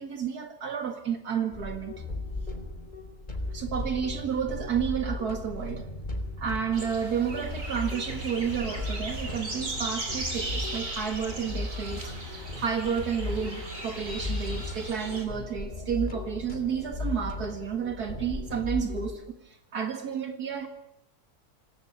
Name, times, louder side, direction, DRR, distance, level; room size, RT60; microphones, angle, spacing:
voice 1, 0.0-1.9 3.5-5.9 6.4-20.7, right 7 dB, 80° right, 2.4 m, -31 dB
sound 1, 1.5-19.1, left 2 dB, 30° left, 4.2 m, -36 dB
sound 2, 6.7-15.3, right 2 dB, 55° right, 4.6 m, -37 dB
28.0 x 18.5 x 8.7 m
omnidirectional pair, 1.6 m